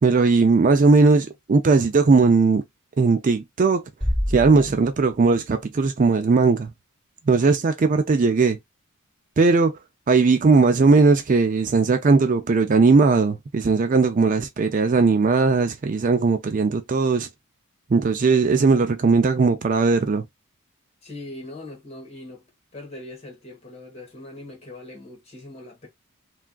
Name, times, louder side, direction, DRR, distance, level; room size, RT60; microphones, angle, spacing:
voice 1, 0.0-2.6 3.0-3.8 4.3-6.7 7.3-8.6 9.4-9.8 10.1-17.3 17.9-20.2, right 4 dB, 40° right, 0.4 m, -18 dB
Bass drum, 4.0-5.4, equal, ahead, 2.1 m, -27 dB
voice 2, 21.0-22.4 22.7-25.9, left 2 dB, 30° left, 1.3 m, -40 dB
3.4 x 2.4 x 2.3 m
head